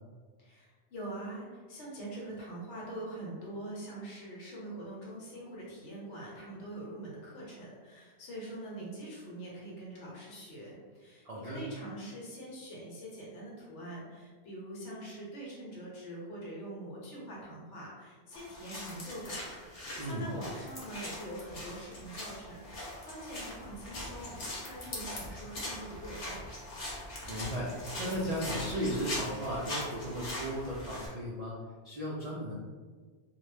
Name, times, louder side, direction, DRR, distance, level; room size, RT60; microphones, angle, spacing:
voice 1, 0.4-26.5, right 1 dB, 80° left, -5 dB, 1.1 m, -44 dB
voice 2, 11.2-11.6 20.0-20.3 27.3-31.5 31.8-32.5, equal, 75° right, -5 dB, 0.3 m, -35 dB
sound 1, 18.3-31.1, left 1 dB, 60° left, 0.9 m, -41 dB
2.4 x 2.0 x 3.1 m, 1.5 s
omnidirectional pair, 1.2 m